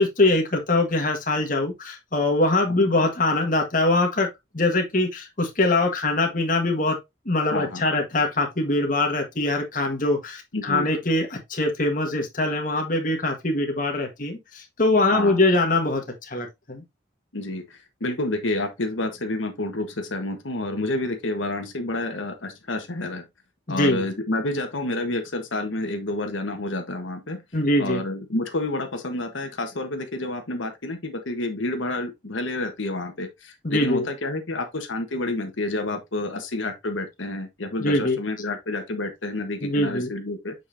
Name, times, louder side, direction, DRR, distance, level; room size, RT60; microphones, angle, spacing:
voice 1, 0.0-4.3 4.5-7.0 7.2-16.8 23.7-24.0 27.5-28.0 33.6-34.1 37.8-38.2 39.6-40.1, left 2 dB, 45° left, 1.7 m, -23 dB
voice 2, 7.5-7.8 10.5-10.9 15.1-15.4 17.3-23.2 23.7-27.4 27.8-40.5, left 2 dB, 90° left, 1.3 m, -29 dB
7.2 x 5.4 x 2.7 m
head